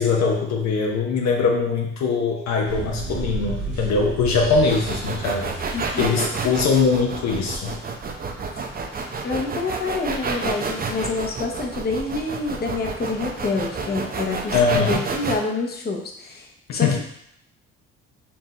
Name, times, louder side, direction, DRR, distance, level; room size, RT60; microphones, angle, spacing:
voice 1, 0.0-5.5 6.0-7.7 14.5-15.0 16.7-17.0, left 4 dB, 65° left, 0 dB, 0.8 m, -22 dB
sound 1, 2.7-6.6, right 2 dB, 90° right, 1.3 m, -32 dB
sound 2, 4.7-15.4, right 4 dB, 30° right, 0.6 m, -29 dB
voice 2, 5.7-6.3 9.2-17.0, left 3 dB, 35° left, 1 dB, 0.8 m, -27 dB
4.5 x 2.7 x 3.2 m, 0.72 s
supercardioid pair, 60°, 30 cm